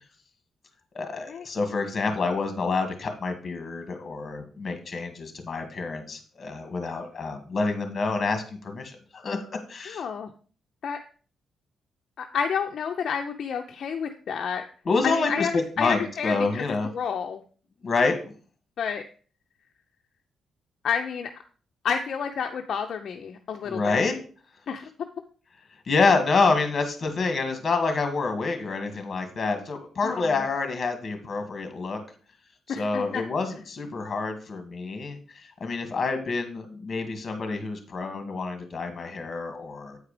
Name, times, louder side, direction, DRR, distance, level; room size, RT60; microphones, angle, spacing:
voice 1, 0.9-9.4 9.7-10.0 14.8-16.9 17.8-18.1 23.6-24.1 25.9-32.0 32.7-35.2 35.6-40.0, left 4 dB, 40° left, 6 dB, 1.8 m, -27 dB
voice 2, 9.9-10.3 10.8-11.0 12.2-14.6 15.0-16.6 16.9-17.4 18.8-19.0 20.8-21.3 21.8-24.1 24.7-24.8 30.0-30.4 32.7-33.2, left 7 dB, 60° left, 4 dB, 0.6 m, -30 dB
8.7 x 4.8 x 5.0 m, 0.41 s
cardioid pair, 125°, 0 cm